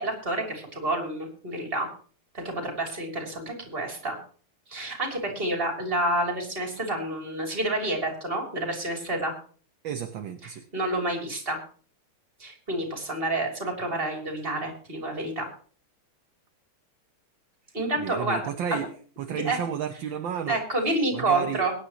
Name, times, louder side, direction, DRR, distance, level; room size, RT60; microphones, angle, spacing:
voice 1, 0.0-1.9 2.3-4.2 4.7-9.3 10.7-11.6 12.4-15.5 17.7-18.8 19.3-19.6 20.5-21.7, right 2 dB, 25° right, 2 dB, 3.3 m, -29 dB
voice 2, 9.8-10.6 18.0-18.9 19.2-20.6 21.1-21.6, right 8 dB, 65° right, 6 dB, 1.6 m, -32 dB
22.0 x 9.8 x 3.0 m, 0.44 s
omnidirectional pair, 2.4 m